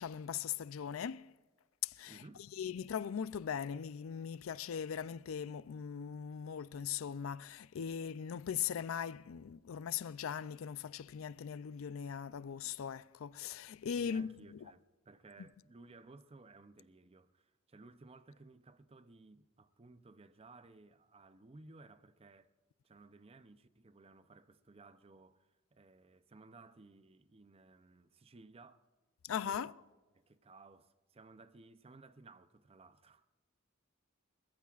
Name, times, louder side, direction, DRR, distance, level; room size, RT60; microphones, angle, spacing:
voice 1, 0.0-1.3 1.8-2.2 2.6-14.6 29.2-29.7, left 8 dB, 90° left, 0.4 m, -40 dB
voice 2, 2.1-2.5 14.0-22.5 22.8-28.9 29.4-29.7 30.1-33.3, right 3 dB, 30° right, 0.6 m, -58 dB
29.5 x 15.0 x 2.4 m
head